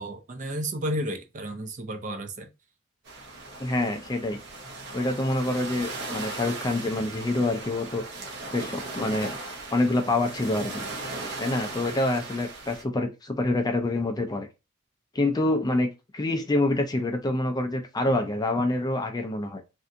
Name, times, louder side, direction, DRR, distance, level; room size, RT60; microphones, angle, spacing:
voice 1, 0.0-2.5, right 1 dB, 35° right, 0.5 m, -32 dB
sound 1, 3.1-12.8, right 2 dB, 55° right, 0.9 m, -38 dB
voice 2, 3.6-4.4 4.9-9.4 9.7-10.8 11.4-14.5 15.1-19.6, left 2 dB, 20° left, 0.4 m, -26 dB
3.3 x 2.6 x 2.5 m
head